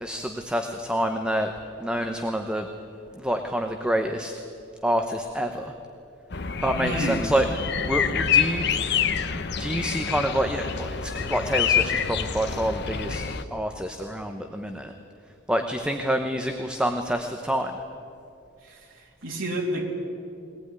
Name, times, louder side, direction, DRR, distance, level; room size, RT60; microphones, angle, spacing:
voice 1, 0.0-1.5 1.8-2.7 3.2-4.3 4.8-5.7 6.6-8.8 9.3-13.2 13.5-14.9 15.5-17.7, equal, 5° right, 5 dB, 1.0 m, -27 dB
sound 1, 6.3-13.4, left 7 dB, 60° left, 1.0 m, -27 dB
voice 2, 6.7-7.2 18.6-19.9, right 1 dB, 80° right, -2 dB, 3.1 m, -30 dB
22.0 x 18.5 x 9.6 m, 2.6 s
head